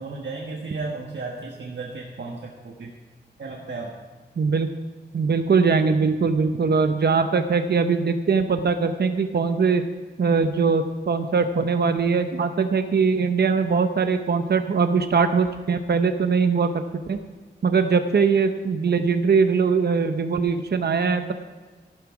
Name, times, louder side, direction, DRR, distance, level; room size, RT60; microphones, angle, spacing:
voice 1, 0.0-2.9 3.4-3.9, right 3 dB, 80° right, -1 dB, 1.4 m, -34 dB
voice 2, 4.4-4.7 5.1-9.8 10.2-17.2 17.6-21.3, right 5 dB, 65° right, 8 dB, 0.8 m, -21 dB
14.0 x 12.0 x 4.8 m, 1.4 s
wide cardioid pair, 105°, 18 cm